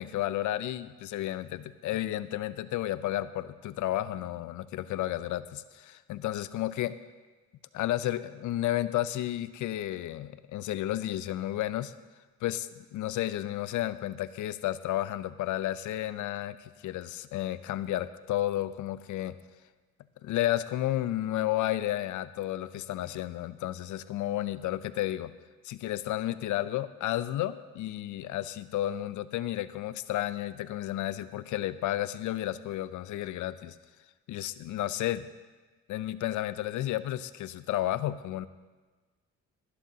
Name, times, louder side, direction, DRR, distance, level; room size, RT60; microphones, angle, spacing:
voice 1, 0.0-6.9 7.7-11.9 12.4-19.4 20.2-25.3 25.6-33.7 34.3-35.3 35.9-38.5, left 14 dB, 80° left, 14 dB, 0.6 m, -32 dB
19.0 x 11.5 x 2.8 m, 1.3 s
cardioid pair, 90°, 30 cm